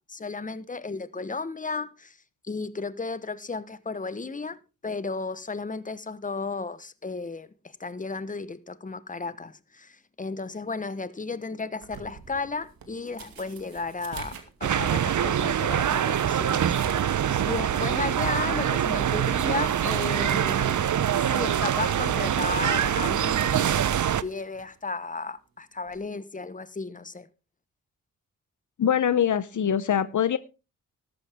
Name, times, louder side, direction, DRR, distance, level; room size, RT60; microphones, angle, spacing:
voice 1, 0.0-2.2 2.4-4.6 4.8-7.5 7.8-17.1 17.4-21.0 21.3-27.3, left 4 dB, 20° left, 1.1 m, -34 dB
sound 1, 11.8-17.2 17.5-17.6 18.2-18.3 18.7-21.0 21.3-21.6 22.8-24.8 25.9-26.1, right 6 dB, 80° right, 2.4 m, -47 dB
sound 2, 14.6-24.2, right 9 dB, 55° right, 0.8 m, -24 dB
voice 2, 28.8-30.4, left 9 dB, 55° left, 0.9 m, -23 dB
13.0 x 11.5 x 3.6 m
cardioid pair, 60°, 35 cm